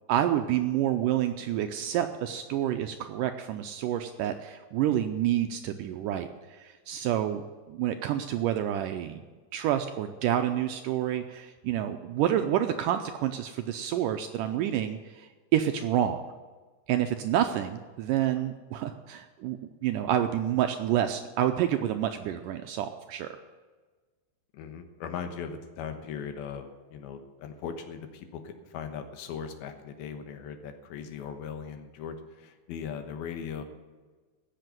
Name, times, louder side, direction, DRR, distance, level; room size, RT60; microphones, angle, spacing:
voice 1, 0.1-9.2 9.5-16.2 16.9-23.3, right 11 dB, 80° right, 7 dB, 1.9 m, -28 dB
voice 2, 24.5-33.6, left 7 dB, 80° left, 6 dB, 3.1 m, -39 dB
15.5 x 6.7 x 9.2 m, 1.4 s
omnidirectional pair, 4.3 m